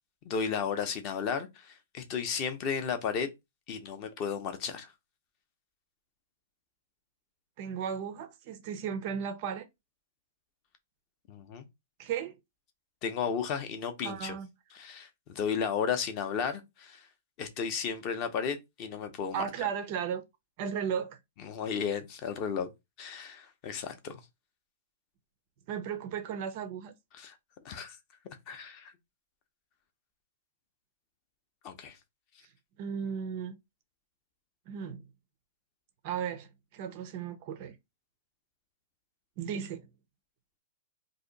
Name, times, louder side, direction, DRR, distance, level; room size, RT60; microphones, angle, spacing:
voice 1, 0.2-3.3 3.7-4.9 11.3-11.6 13.0-14.4 14.7-17.0 17.4-19.5 21.4-22.7 23.0-24.2 27.1-27.4 27.6-28.0 28.5-28.9 31.6-31.9, left 6 dB, 25° left, 0.5 m, -34 dB
voice 2, 7.6-9.7 12.0-12.4 14.0-14.5 19.3-20.2 20.6-21.2 25.7-26.9 32.8-33.6 34.7-35.0 36.0-37.7 39.4-39.9, right 8 dB, 30° right, 0.4 m, -35 dB
2.7 x 2.5 x 3.8 m
hypercardioid pair, 175°, 0 cm